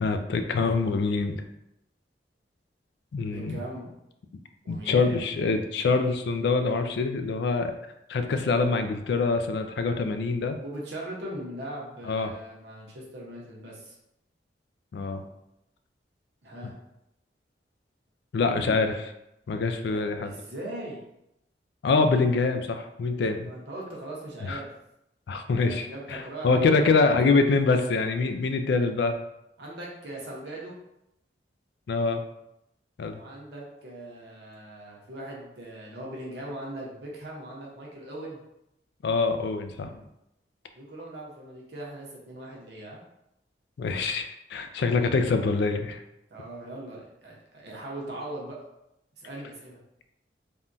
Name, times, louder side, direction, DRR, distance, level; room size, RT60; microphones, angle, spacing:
voice 1, 0.0-1.4 3.1-3.6 4.7-7.8 8.1-10.6 12.1-12.3 14.9-15.2 18.3-18.9 19.5-20.3 21.8-23.5 24.4-24.6 25.3-29.2 31.9-32.2 33.0-33.2 39.0-40.0 43.8-46.0, left 4 dB, 65° left, 7 dB, 0.3 m, -25 dB
voice 2, 3.3-3.9 4.6-5.3 10.6-14.0 16.4-16.7 18.6-18.8 19.8-21.0 23.4-24.7 25.5-26.9 29.6-30.7 33.1-38.4 40.8-43.0 46.3-48.6 49.2-49.8, right 1 dB, 65° right, -3 dB, 0.8 m, -40 dB
3.5 x 2.2 x 2.5 m, 0.84 s
head